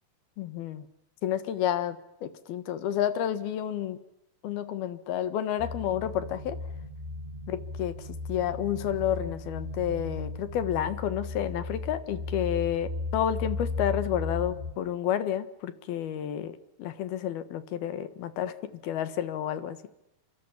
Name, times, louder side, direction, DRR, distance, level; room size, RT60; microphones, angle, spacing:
voice 1, 0.4-0.8 1.2-4.0 4.4-6.6 7.5-19.8, left 10 dB, 75° left, 13 dB, 3.4 m, -30 dB
sound 1, 5.6-14.7, left 3 dB, 10° right, 1.6 m, -36 dB
26.0 x 26.0 x 7.4 m, 0.86 s
omnidirectional pair, 4.5 m